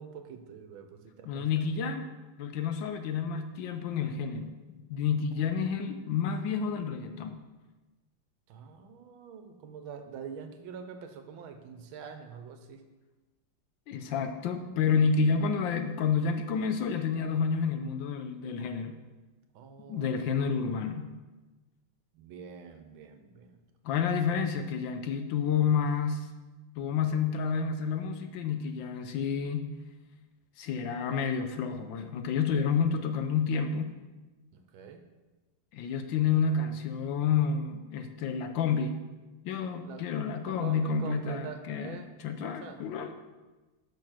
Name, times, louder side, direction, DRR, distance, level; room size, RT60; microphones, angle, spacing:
voice 1, 0.0-1.5 5.4-5.8 8.5-12.8 19.5-20.2 22.1-23.6 34.5-35.0 39.8-40.0 40.4-42.1 42.4-43.1, right 6 dB, 75° right, 7 dB, 1.5 m, -45 dB
voice 2, 1.2-2.1 2.4-7.4 13.9-19.0 19.9-21.1 23.8-26.3 26.8-29.7 30.6-33.9 35.7-39.0 39.4-43.1, left 6 dB, 75° left, 8 dB, 1.3 m, -29 dB
6.8 x 6.0 x 5.8 m, 1.2 s
omnidirectional pair, 2.3 m